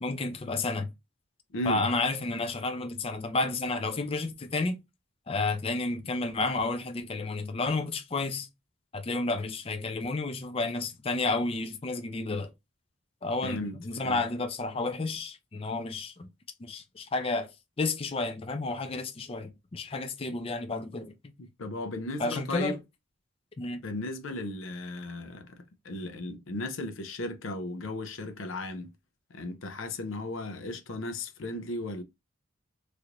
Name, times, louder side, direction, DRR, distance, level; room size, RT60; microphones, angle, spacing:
voice 1, 0.0-0.9 1.7-4.8 5.3-8.5 8.9-12.5 13.2-16.3 16.6-17.5 17.8-21.1 22.2-22.8 23.6-23.8, left 3 dB, 30° left, 0.4 m, -31 dB
voice 2, 1.5-1.8 13.4-13.8 14.0-14.2 21.4-22.8 23.8-25.6 25.8-28.9 29.3-32.0, left 2 dB, 80° left, 0.6 m, -35 dB
3.2 x 2.5 x 2.8 m
head